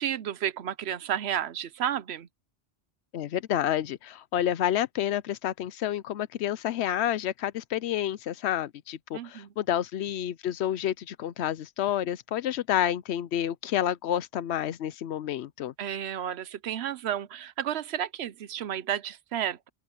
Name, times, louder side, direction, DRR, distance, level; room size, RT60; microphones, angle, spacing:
voice 1, 0.0-2.3 9.1-9.5 15.8-19.7, right 10 dB, 80° right, 1.0 m, -32 dB
voice 2, 3.1-15.7, left 11 dB, 85° left, 0.9 m, -29 dB
open air
omnidirectional pair, 1.1 m